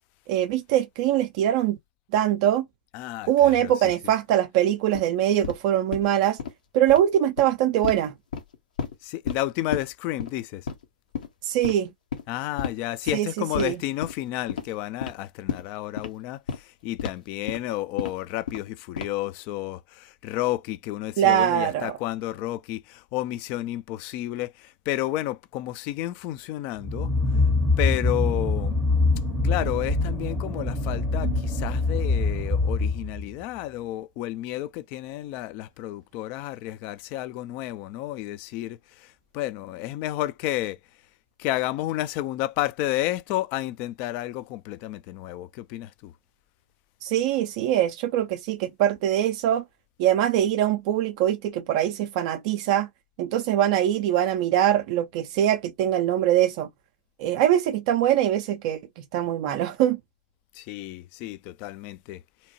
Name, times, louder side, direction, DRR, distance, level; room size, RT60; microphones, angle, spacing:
voice 1, 0.3-1.8 2.1-2.7 3.3-6.4 6.7-8.1 11.4-11.9 13.1-13.3 13.6-13.7 21.2-21.9 47.0-49.6 50.0-52.9 53.2-56.7 57.2-58.8 59.1-60.0, right 11 dB, 45° right, 0.4 m, -22 dB
voice 2, 2.9-3.9 9.0-10.7 12.3-27.4 27.8-28.8 29.4-40.8 41.4-46.1 60.5-62.5, left 15 dB, 40° left, 0.3 m, -31 dB
sound 1, 4.9-5.0 5.4-5.6 5.9-6.1 6.4-6.5 6.8-7.0 7.4-7.5 7.8-8.0 8.3-8.9 9.3-9.4 9.7-9.8 10.2-10.3 10.7-10.8 11.1-11.3 11.6-11.7 12.1-12.2 12.6-12.7 13.1-13.2 13.5-13.7 14.0-14.2 14.5-14.7 15.0-15.1 15.5-15.6 16.0-16.1 16.5-16.6 17.0-17.1 17.5-17.6 18.0-18.1 18.5-18.7 19.0-19.3, left 7 dB, 65° left, 0.8 m, -31 dB
sound 2, 26.8-33.3, left 3 dB, ahead, 0.7 m, -24 dB
2.8 x 2.1 x 2.7 m
figure-of-eight pair, 105°, 5 cm